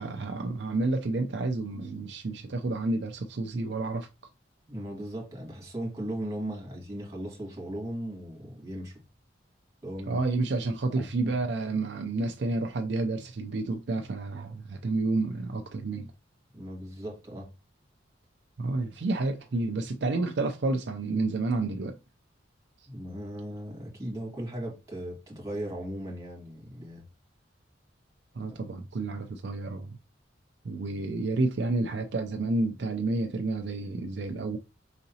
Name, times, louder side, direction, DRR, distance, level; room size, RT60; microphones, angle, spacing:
voice 1, 0.0-4.1 10.1-16.1 18.6-22.0 28.4-30.0 30.6-34.6, right 2 dB, 60° right, 0.5 m, -30 dB
voice 2, 4.7-9.0 9.8-10.2 11.0-11.4 16.5-17.5 22.9-27.0, right 1 dB, 15° right, 2.0 m, -37 dB
5.0 x 3.8 x 2.8 m
head